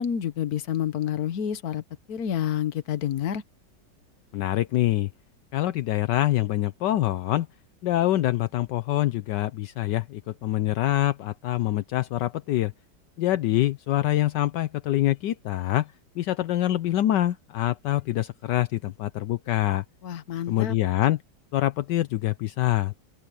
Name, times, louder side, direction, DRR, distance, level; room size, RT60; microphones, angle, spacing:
voice 1, 0.0-1.8 2.1-3.4 20.0-20.7, left 9 dB, 60° left, 1.5 m, -28 dB
voice 2, 4.3-5.1 5.5-7.5 7.8-12.7 13.2-19.8 20.5-21.2 21.5-23.0, left 14 dB, 75° left, 1.3 m, -25 dB
open air
omnidirectional pair, 1.9 m